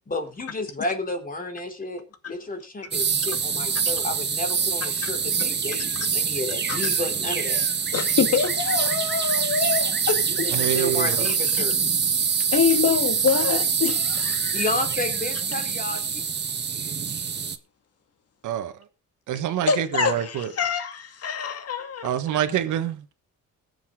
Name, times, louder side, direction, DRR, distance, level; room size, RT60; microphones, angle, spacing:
voice 1, 0.1-7.6 10.4-11.9 14.5-16.2, left 2 dB, 30° left, 3.7 m, -31 dB
sound 1, 2.9-17.6, right 6 dB, 35° right, 1.2 m, -25 dB
voice 2, 7.9-10.5 11.5-11.6 12.5-14.6 19.7-22.2, left 6 dB, 55° left, 2.2 m, -25 dB
voice 3, 10.5-11.3 18.4-18.7 19.3-20.5 22.0-23.1, right 11 dB, 80° right, 1.5 m, -26 dB
20.5 x 7.1 x 3.8 m
cardioid pair, 90°, 30 cm